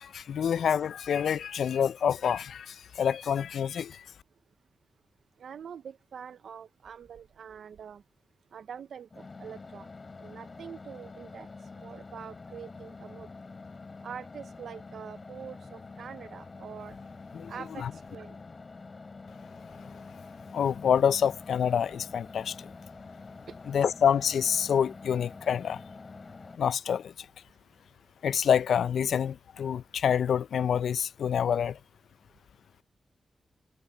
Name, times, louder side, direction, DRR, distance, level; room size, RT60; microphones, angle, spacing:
voice 1, 0.0-4.0 17.3-17.5 17.8-17.9 20.5-22.5 23.7-25.8 26.6-27.0 28.2-31.8, left 8 dB, 80° left, 0.4 m, -27 dB
voice 2, 5.4-8.0 8.5-9.9 10.2-11.5 11.8-13.3 14.0-17.0 17.5-18.4, right 7 dB, 75° right, 0.5 m, -44 dB
sound 1, 9.1-26.6, left 4 dB, 35° left, 4.2 m, -46 dB
wide cardioid pair, 120°, 0 cm